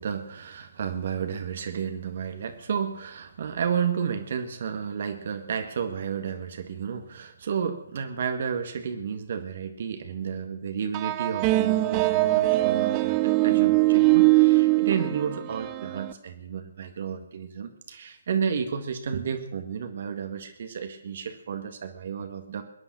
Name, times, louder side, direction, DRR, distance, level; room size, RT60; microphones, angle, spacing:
voice 1, 0.0-22.6, right 7 dB, 50° right, 7 dB, 1.7 m, -32 dB
sound 1, 10.9-16.1, right 20 dB, 25° right, 0.7 m, -22 dB
21.5 x 9.8 x 6.1 m, 0.74 s
figure-of-eight pair, 140°, 0 cm